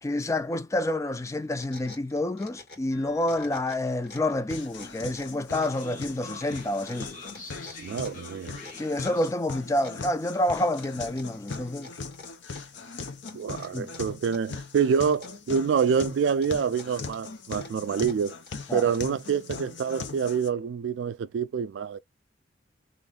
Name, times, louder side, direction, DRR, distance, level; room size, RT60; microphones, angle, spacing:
voice 1, 0.0-7.1 8.8-11.9 13.7-13.9 18.7-18.9, left 1 dB, 15° left, 0.3 m, -28 dB
sound 1, 1.2-2.9 3.2-4.4 4.8-9.3 9.8-10.5 10.7-12.8 13.3-14.6 14.8-15.8 16.3-19.2, left 3 dB, 60° left, 1.9 m, -48 dB
Train, 2.9-9.3, left 3 dB, 45° left, 1.5 m, -47 dB
sound 2, 4.5-20.5, left 4 dB, 75° left, 0.7 m, -40 dB
voice 2, 7.8-8.6 13.3-18.4 18.7-22.0, right 6 dB, 80° right, 0.3 m, -27 dB
3.1 x 2.5 x 3.7 m
head